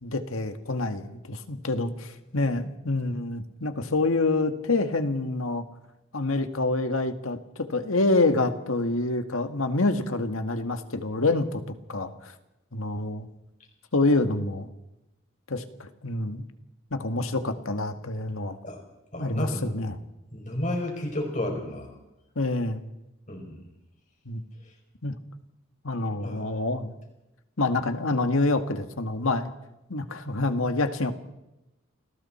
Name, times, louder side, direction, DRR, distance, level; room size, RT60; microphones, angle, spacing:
voice 1, 0.0-5.6 6.1-11.6 11.9-12.3 12.7-13.3 13.9-14.7 15.5-16.4 16.9-18.6 19.2-20.0 22.4-22.8 24.3-24.4 25.0-25.1 25.8-26.9 27.6-29.5 29.9-31.1, left 2 dB, 80° left, 8 dB, 1.8 m, -27 dB
voice 2, 19.1-19.6 20.3-21.9 23.3-23.6 26.2-26.4, left 1 dB, 35° left, 1 dB, 5.3 m, -31 dB
29.5 x 20.0 x 4.4 m, 0.93 s
head